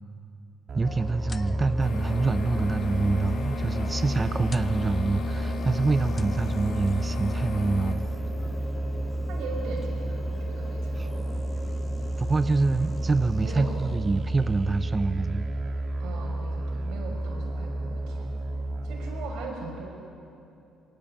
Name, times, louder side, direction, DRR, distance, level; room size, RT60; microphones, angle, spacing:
voice 1, 0.7-8.1 11.0-11.1 12.2-15.5, right 3 dB, 25° right, 12 dB, 0.5 m, -26 dB
sound 1, 0.7-19.3, right 1 dB, 40° right, 2.0 m, -31 dB
sound 2, 0.8-14.0, left 3 dB, 25° left, 0.8 m, -40 dB
sound 3, 1.8-7.9, left 7 dB, 70° left, 1.8 m, -36 dB
voice 2, 9.3-11.4 13.4-13.7 16.0-18.3 18.8-19.9, right 4 dB, 80° right, 0 dB, 6.0 m, -39 dB
21.0 x 18.0 x 8.7 m, 2.7 s
cardioid pair, 100°, 0 cm